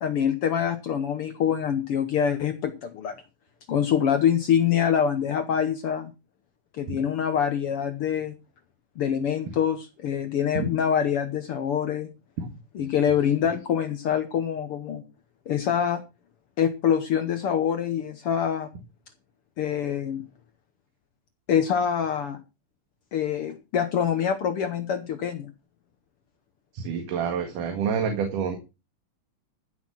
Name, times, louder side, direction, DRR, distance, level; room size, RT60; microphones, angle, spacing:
voice 1, 0.0-3.2 3.7-6.1 6.8-8.3 9.0-12.1 12.7-15.0 15.5-16.0 16.6-18.7 19.6-20.2 21.5-22.4 23.1-25.5, left 8 dB, 70° left, 9 dB, 1.4 m, -25 dB
voice 2, 26.7-28.6, right 6 dB, 75° right, 5 dB, 3.3 m, -28 dB
14.5 x 6.5 x 6.0 m, 0.29 s
omnidirectional pair, 3.8 m